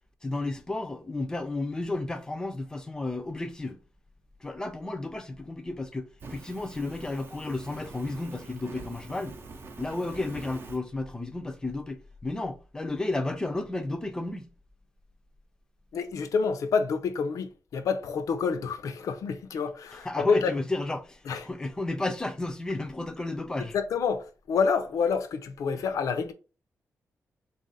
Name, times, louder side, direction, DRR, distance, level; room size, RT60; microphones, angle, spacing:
voice 1, 0.2-3.8 4.4-9.4 9.8-14.5 19.9-23.8 25.8-25.9, left 2 dB, 10° left, 0.5 m, -32 dB
Fire, 6.2-10.8, right 3 dB, 40° right, 0.6 m, -45 dB
voice 2, 15.9-20.5 21.3-21.4 23.7-26.3, left 5 dB, 80° left, 0.6 m, -28 dB
4.0 x 2.5 x 4.0 m
wide cardioid pair, 180°, 6 cm